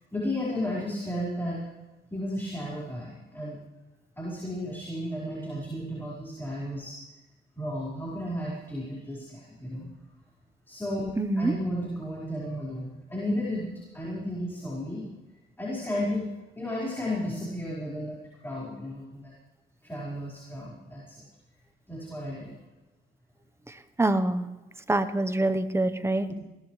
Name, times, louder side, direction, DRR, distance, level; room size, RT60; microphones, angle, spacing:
voice 1, 0.1-1.6 2.1-3.6 4.2-7.0 7.5-9.9 10.7-15.1 15.6-16.3 16.5-18.2 18.4-19.3 19.8-21.2 21.9-22.5 26.3-26.4, left 1 dB, 10° left, -6 dB, 5.2 m, -33 dB
voice 2, 11.2-11.5 24.0-24.5 24.9-26.3, right 2 dB, 15° right, 11 dB, 1.1 m, -25 dB
21.0 x 17.5 x 3.4 m, 1.1 s
cardioid pair, 90°, 20 cm